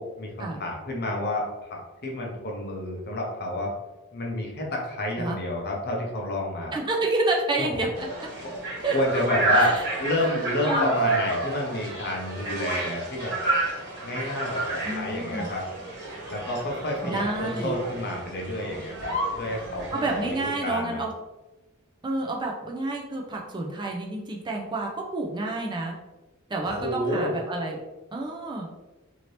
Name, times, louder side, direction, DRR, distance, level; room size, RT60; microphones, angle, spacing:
voice 1, 0.0-3.7 4.1-6.8 7.6-7.7 8.4-8.5 8.9-13.4 14.0-15.7 16.3-19.1 19.4-21.0 26.6-27.3, left 1 dB, 50° left, 0 dB, 0.7 m, -29 dB
voice 2, 6.7-8.3 8.8-9.0 9.5-9.9 10.6-10.9 14.8-15.5 17.0-17.7 19.9-21.1 22.0-25.9 26.5-27.8 28.1-28.7, right 2 dB, 20° right, 0 dB, 0.4 m, -29 dB
sound 1, 7.9-20.5, right 2 dB, 55° right, 1.3 m, -30 dB
2.8 x 2.7 x 3.2 m, 1.1 s
head